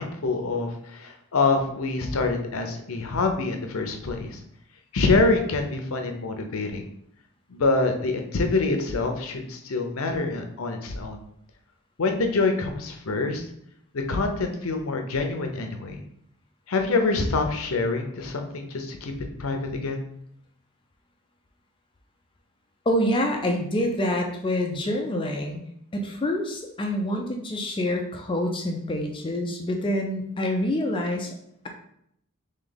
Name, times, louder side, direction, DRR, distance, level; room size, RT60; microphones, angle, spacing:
voice 1, 0.0-4.4 4.9-6.9 7.5-11.2 12.0-13.4 13.9-16.0 16.7-19.1 19.4-20.0, left 3 dB, 70° left, 4 dB, 0.7 m, -26 dB
voice 2, 22.9-25.6 25.9-31.4, left 1 dB, 25° left, 2 dB, 0.4 m, -26 dB
3.4 x 3.2 x 3.9 m, 0.71 s
head